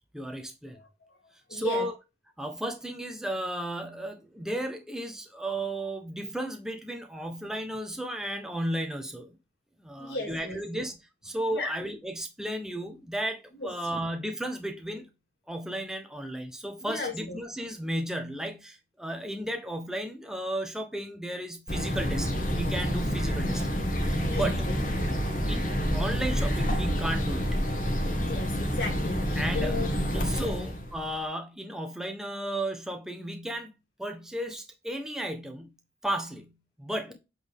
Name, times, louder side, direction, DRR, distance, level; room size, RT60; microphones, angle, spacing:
voice 1, 0.1-0.8 1.5-1.9 2.4-9.4 9.8-10.9 11.2-15.1 15.5-23.7 24.0-24.6 25.5-27.5 29.4-29.8 30.1-33.7 34.0-35.7 36.0-37.1, right 1 dB, 5° right, 1.1 m, -34 dB
voice 2, 1.5-1.9 10.0-10.6 11.5-11.7 13.5-13.7 16.8-17.4 24.2-24.7 28.2-30.6, left 3 dB, 80° left, 2.3 m, -36 dB
sound 1, 21.7-31.2, equal, 50° left, 1.9 m, -28 dB
7.8 x 4.3 x 3.6 m
head